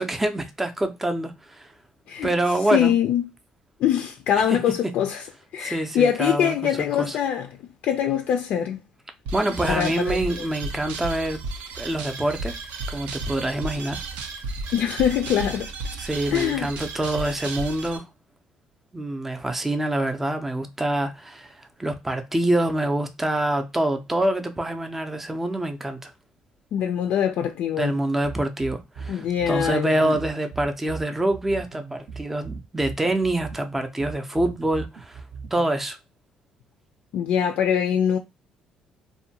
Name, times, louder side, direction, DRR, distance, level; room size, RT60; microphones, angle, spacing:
voice 1, 0.0-1.7 2.2-2.9 4.5-4.6 5.6-7.2 9.3-11.4 11.8-12.6 12.9-14.0 16.0-18.0 18.9-26.1 27.8-35.2 35.5-36.0, right 1 dB, 10° right, 0.5 m, -26 dB
voice 2, 2.7-3.3 3.8-5.2 5.5-8.8 9.7-10.2 14.7-15.7 16.3-16.7 26.7-27.9 29.1-30.2 37.1-38.2, left 9 dB, 70° left, 0.4 m, -23 dB
sound 1, 9.2-18.0, right 3 dB, 85° right, 0.5 m, -34 dB
sound 2, 28.2-35.8, right 5 dB, 60° right, 0.8 m, -38 dB
2.6 x 2.2 x 2.7 m
cardioid pair, 95°, 2 cm